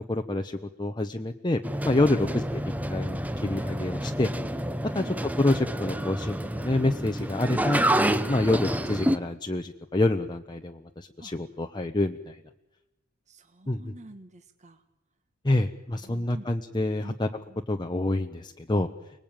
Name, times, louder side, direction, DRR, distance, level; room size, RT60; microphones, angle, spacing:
voice 1, 0.1-2.4 2.9-4.3 4.9-5.0 5.4-7.8 8.3-12.4 13.7-13.9 15.4-17.3 17.7-18.9, left 2 dB, 20° left, 4 dB, 0.9 m, -27 dB
sound 1, 1.6-9.2, right 1 dB, 5° right, 0.9 m, -28 dB
voice 2, 13.3-14.8 15.9-16.5 17.0-17.6, right 1 dB, 35° right, 7 dB, 1.4 m, -46 dB
30.0 x 20.0 x 9.0 m, 0.96 s
head